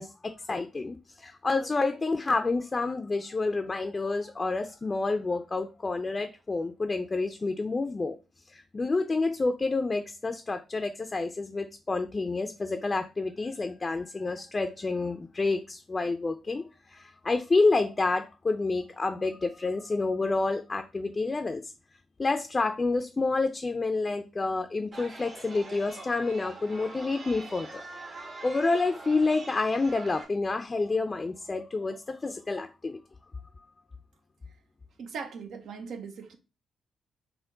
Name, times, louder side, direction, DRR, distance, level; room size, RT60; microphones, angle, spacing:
voice 1, 0.0-8.2 8.5-21.7 22.2-27.8 28.1-33.0, left 3 dB, 35° left, 0.4 m, -29 dB
Chatter, 24.9-30.2, right 2 dB, 55° right, 1.2 m, -44 dB
voice 2, 35.0-36.4, right 5 dB, 75° right, 0.7 m, -39 dB
4.3 x 2.2 x 3.8 m
supercardioid pair, 55°, 0 cm